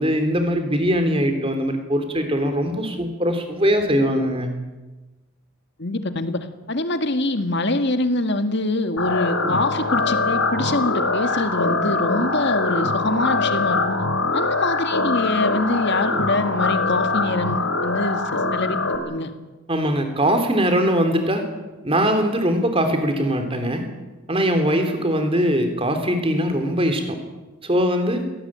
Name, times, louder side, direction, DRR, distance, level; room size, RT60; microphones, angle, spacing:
voice 1, 0.0-4.5 19.7-21.5 21.8-23.9 24.3-27.2 27.6-28.2, equal, 25° right, 7 dB, 3.2 m, -21 dB
voice 2, 5.8-14.0 14.3-18.8 19.1-19.3, left 2 dB, 50° left, 8 dB, 1.9 m, -24 dB
sound 1, 9.0-19.0, left 3 dB, 70° left, 3.5 m, -23 dB
22.5 x 18.0 x 8.9 m, 1.2 s
head